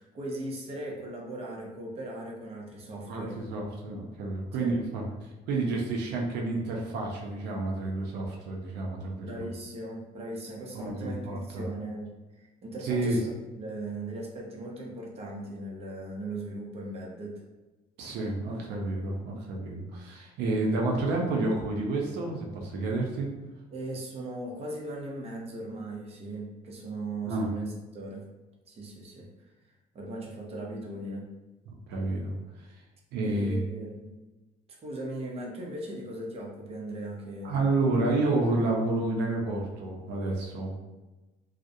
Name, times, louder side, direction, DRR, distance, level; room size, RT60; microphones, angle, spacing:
voice 1, 0.0-3.4 4.6-4.7 9.2-13.3 13.6-17.4 23.7-28.3 28.7-29.3 29.9-31.4 33.2-34.1 34.8-37.6, right 1 dB, 35° right, -2 dB, 0.6 m, -38 dB
voice 2, 3.1-9.4 10.7-11.6 12.8-13.2 18.0-23.3 27.2-27.5 31.7-32.3 32.7-32.8 33.1-33.6 37.4-40.7, right 2 dB, 80° right, -1 dB, 0.5 m, -30 dB
2.3 x 2.0 x 2.6 m, 1.1 s
cardioid pair, 110°, 17 cm